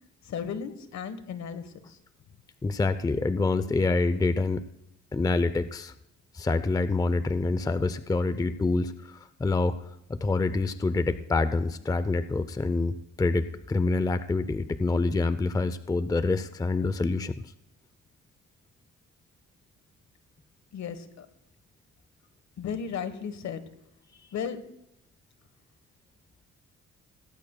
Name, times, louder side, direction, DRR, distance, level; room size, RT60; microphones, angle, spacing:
voice 1, 0.2-2.0 20.7-21.3 22.6-23.6 24.3-24.6, left 7 dB, 65° left, 11 dB, 1.3 m, -35 dB
voice 2, 2.6-4.6 5.1-5.9 6.3-9.8 10.1-17.3, left 3 dB, 10° left, 13 dB, 0.5 m, -26 dB
17.5 x 17.5 x 2.3 m, 0.80 s
cardioid pair, 90°, 30 cm